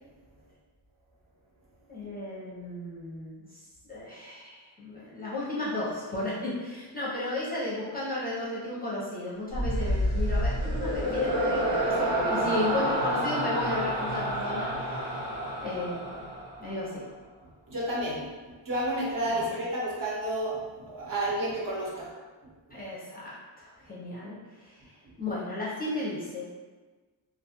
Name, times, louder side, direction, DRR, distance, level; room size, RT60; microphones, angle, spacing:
voice 1, 1.9-3.6 3.9-15.3 15.6-16.3 16.6-17.0 19.3-19.4 22.7-26.5, left 1 dB, 20° left, -8 dB, 0.5 m, -34 dB
sound 1, 9.5-16.9, equal, 85° right, 1.1 m, -29 dB
voice 2, 17.7-20.6 20.8-22.1, right 1 dB, 45° right, -6 dB, 0.8 m, -31 dB
2.4 x 2.3 x 2.7 m, 1.3 s
wide cardioid pair, 145°, 45 cm